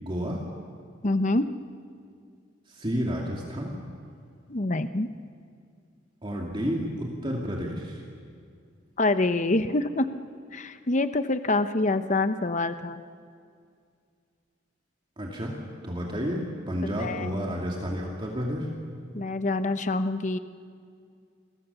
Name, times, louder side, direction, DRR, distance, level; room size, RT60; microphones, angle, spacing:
voice 1, 0.0-0.4 2.7-3.8 6.2-8.0 15.2-15.5 15.8-18.7, equal, 25° right, -1 dB, 2.5 m, -31 dB
voice 2, 1.0-1.5 4.5-5.1 9.0-10.1 10.5-13.0 17.0-17.5 19.1-20.4, left 2 dB, 40° left, 10 dB, 0.9 m, -26 dB
29.0 x 22.5 x 7.0 m, 2.2 s
head